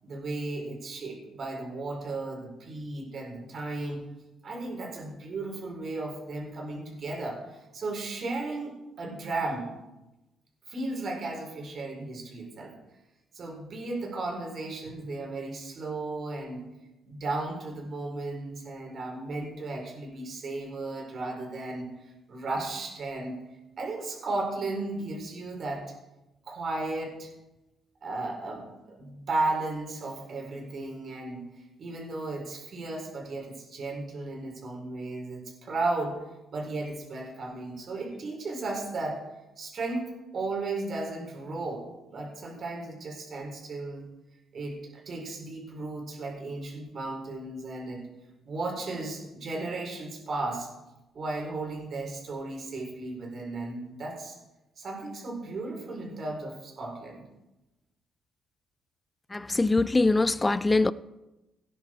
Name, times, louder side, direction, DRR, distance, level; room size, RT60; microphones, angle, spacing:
voice 1, 0.0-4.0 4.4-9.7 10.7-12.7 13.3-16.6 17.0-23.4 23.8-25.9 26.4-27.3 28.0-36.2 36.5-39.2 39.6-44.1 44.5-48.0 48.4-50.7 51.1-54.4 54.8-57.2, right 2 dB, 45° right, 4.4 m, -35 dB
voice 2, 59.3-60.9, left 3 dB, 15° left, 0.4 m, -23 dB
17.5 x 10.0 x 4.5 m
cardioid pair, 125°, 0 cm